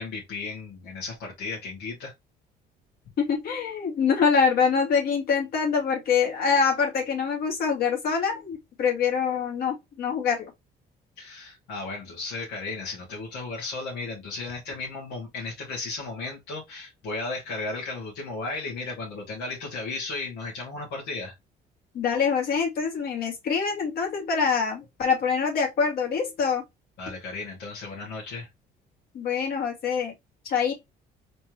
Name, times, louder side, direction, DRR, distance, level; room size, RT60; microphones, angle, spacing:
voice 1, 0.0-2.1 11.2-21.3 27.0-28.5, left 3 dB, 85° left, 2.2 m, -35 dB
voice 2, 3.2-10.5 21.9-26.6 29.1-30.1 30.4-30.7, left 6 dB, 65° left, 2.3 m, -25 dB
4.2 x 3.4 x 3.0 m
cardioid pair, 110°, 17 cm